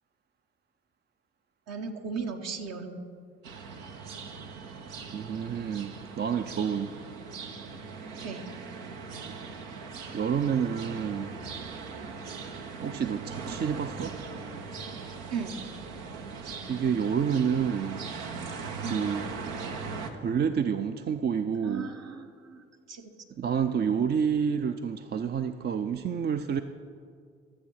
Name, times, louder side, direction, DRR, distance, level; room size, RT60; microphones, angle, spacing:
voice 1, 1.7-3.0 8.2-8.4 15.3-15.9 18.8-19.2 21.6-23.1, right 5 dB, 55° right, 4 dB, 1.3 m, -37 dB
sound 1, 3.4-20.1, right 5 dB, 75° right, 1.0 m, -40 dB
voice 2, 5.1-6.9 10.1-11.4 12.8-14.1 16.4-18.0 18.9-19.3 20.1-21.9 23.4-26.6, right 7 dB, 35° right, 9 dB, 0.5 m, -29 dB
13.0 x 7.6 x 5.7 m, 2.2 s
hypercardioid pair, 50°, 31 cm